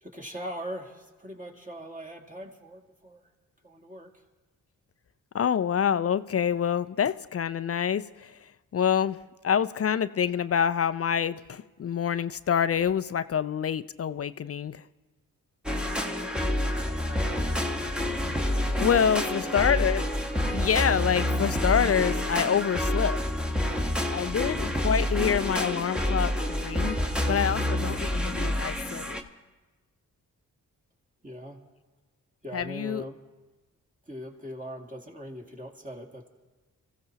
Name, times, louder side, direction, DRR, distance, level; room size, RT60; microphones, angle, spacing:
voice 1, 0.0-3.2 3.6-4.1 16.1-16.3 16.8-17.5 19.2-19.7 24.3-24.7 31.2-31.6 32.4-33.2 34.1-36.3, equal, 20° right, 1 dB, 2.3 m, -41 dB
voice 2, 5.3-9.2 9.4-14.8 18.8-20.0 20.5-23.2 24.1-27.0 27.3-29.2 32.5-33.1, left 8 dB, 40° left, 14 dB, 0.5 m, -26 dB
sound 1, 15.7-29.2, left 1 dB, ahead, 1.3 m, -28 dB
26.0 x 15.0 x 2.9 m, 1.2 s
supercardioid pair, 45°, 37 cm